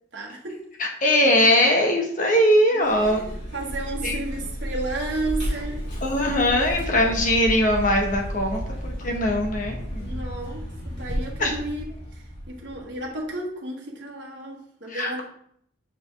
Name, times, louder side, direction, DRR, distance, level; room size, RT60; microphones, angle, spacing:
voice 1, 0.1-0.6 2.7-5.8 6.6-6.7 10.0-11.9 12.1-15.2, right 2 dB, 60° right, -1 dB, 1.3 m, -33 dB
voice 2, 0.8-3.2 4.0-4.2 6.0-10.2 11.4-11.5 14.9-15.2, left 1 dB, 40° left, 2 dB, 1.1 m, -21 dB
Vehicle, 2.8-13.2, equal, 60° left, 2.7 m, -32 dB
6.3 x 5.1 x 3.3 m, 0.67 s
head